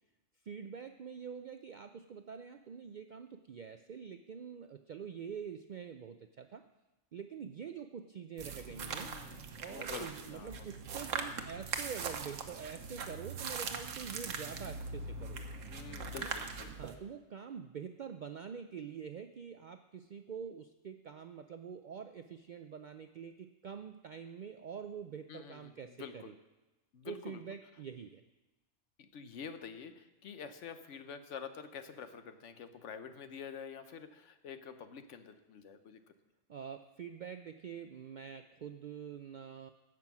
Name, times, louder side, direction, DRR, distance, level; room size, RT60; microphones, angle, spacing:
voice 1, 0.5-6.6 7.1-9.1 9.6-15.6 16.1-16.3 16.8-26.3 27.0-28.2 36.5-39.7, right 7 dB, 65° right, 8 dB, 0.4 m, -46 dB
sound 1, 8.4-16.9, right 5 dB, 85° right, 1.3 m, -41 dB
voice 2, 8.8-10.7 15.6-16.7 25.3-26.3 26.9-27.4 29.0-36.0, left 6 dB, 70° left, 9 dB, 1.1 m, -48 dB
16.0 x 6.2 x 5.9 m, 1.1 s
omnidirectional pair, 1.3 m